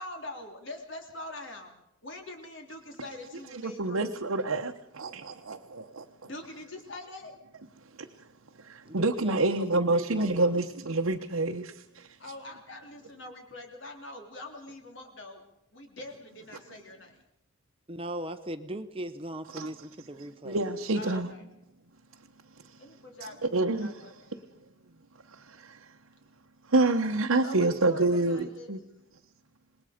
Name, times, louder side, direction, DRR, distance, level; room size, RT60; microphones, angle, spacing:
voice 1, 0.0-1.7 2.0-4.0 6.2-7.3 12.2-15.4 15.7-17.2 20.9-21.4 22.8-23.5 23.8-24.6 27.4-28.7, left 2 dB, 60° left, 3.2 m, -44 dB
voice 2, 3.6-6.1 8.0-8.1 8.6-12.1 19.5-19.7 20.4-21.3 23.4-24.1 25.3-25.8 26.7-28.8, right 2 dB, 80° right, 1.0 m, -28 dB
voice 3, 8.9-10.5 17.9-20.8, right 1 dB, 25° right, 0.8 m, -39 dB
26.5 x 20.0 x 5.1 m
head